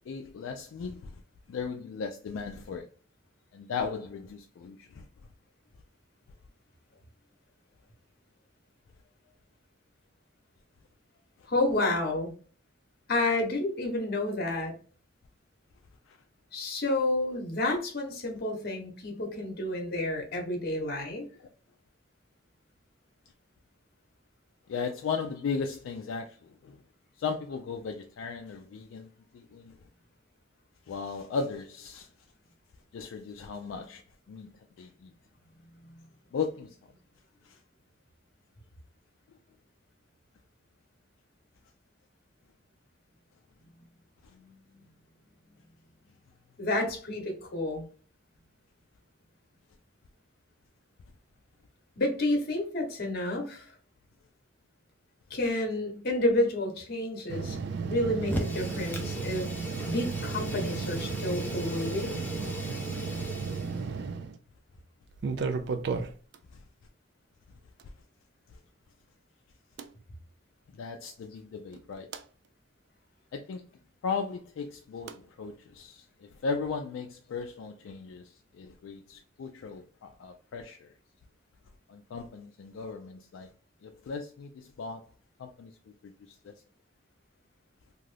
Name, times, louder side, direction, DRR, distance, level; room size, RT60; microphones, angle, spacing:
voice 1, 0.1-1.2 1.5-2.9 3.5-5.1 16.1-16.2 21.4-21.5 24.7-26.8 27.2-29.1 29.3-29.8 30.9-32.1 32.9-34.0 34.3-35.1 36.3-36.8 37.5-37.6 66.5-66.6 70.7-72.1 73.3-73.7 74.0-80.9 81.9-83.5 83.8-85.1 85.4-85.7 86.0-86.5, left 5 dB, 75° left, 0.3 m, -37 dB
voice 2, 11.5-12.3 13.1-14.7 16.5-21.2 35.8-35.9 44.3-44.5 46.6-47.9 52.0-53.7 55.3-57.6 57.9-59.5 59.9-62.2, left 1 dB, 50° left, 0.9 m, -30 dB
sound 1, 57.3-64.4 65.1-66.4 67.8-67.9 69.8-69.9 71.7-72.2 75.1-75.2, right 5 dB, 55° right, 0.3 m, -34 dB
Fire, 58.2-63.8, equal, 10° left, 0.5 m, -38 dB
2.6 x 2.4 x 3.2 m
head